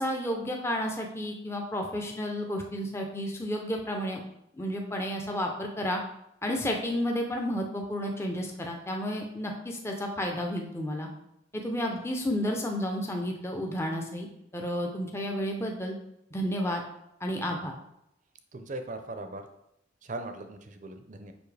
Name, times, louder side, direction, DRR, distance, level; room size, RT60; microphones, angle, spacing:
voice 1, 0.0-4.2 4.6-6.0 6.4-11.1 11.6-14.3 14.5-15.9 16.3-16.8 17.2-17.7, equal, 15° left, 1 dB, 0.6 m, -31 dB
voice 2, 18.5-19.4 20.1-21.3, right 2 dB, 40° right, 7 dB, 0.6 m, -39 dB
7.0 x 5.4 x 3.3 m, 0.81 s
head